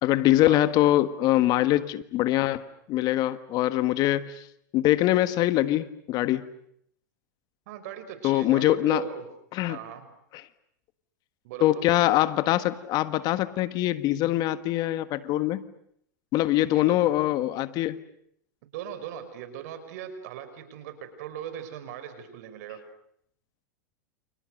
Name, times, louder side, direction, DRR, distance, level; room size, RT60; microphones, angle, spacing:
voice 1, 0.0-4.5 4.7-6.4 8.2-9.0 9.5-9.8 11.6-15.6 16.3-18.0, left 15 dB, 45° left, 13 dB, 1.5 m, -23 dB
voice 2, 7.7-9.3 9.7-10.0 11.4-11.8 16.7-17.0 18.7-22.8, right 9 dB, 65° right, 9 dB, 5.8 m, -39 dB
29.5 x 28.5 x 6.6 m, 0.69 s
hypercardioid pair, 120°, 9 cm